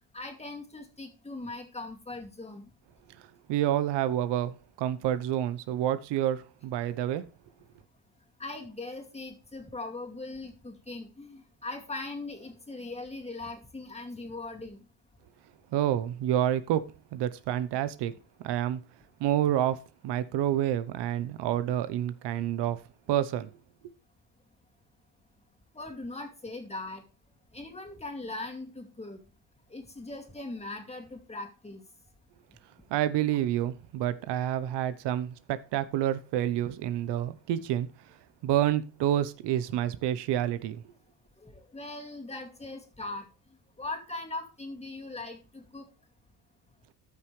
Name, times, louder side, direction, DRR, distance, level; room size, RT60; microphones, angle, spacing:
voice 1, 0.1-2.6 8.4-14.8 25.7-27.0 27.5-29.2 29.7-31.8 41.4-43.3 43.8-45.9, left 2 dB, 15° left, 2.4 m, -40 dB
voice 2, 3.5-7.2 15.7-16.8 17.1-18.1 18.4-18.8 19.2-22.8 23.1-23.5 32.9-37.9 38.4-40.8, right 11 dB, 85° right, 0.8 m, -28 dB
14.0 x 5.9 x 3.2 m
cardioid pair, 105°, 40 cm